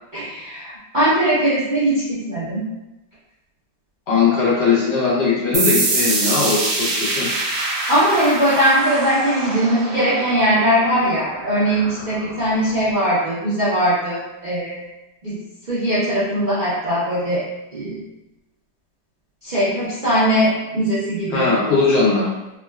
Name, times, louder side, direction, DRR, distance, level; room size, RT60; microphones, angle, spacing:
voice 1, 0.1-2.6 7.9-14.8 15.2-15.4 15.7-17.4 17.7-18.0 19.4-21.5, equal, 50° right, -11 dB, 0.5 m, -20 dB
voice 2, 4.1-7.3 21.3-22.3, left 4 dB, 85° left, -6 dB, 1.6 m, -19 dB
sound 1, 5.5-12.9, right 2 dB, 85° right, 1.3 m, -25 dB
3.6 x 2.2 x 2.2 m, 1.0 s
omnidirectional pair, 1.8 m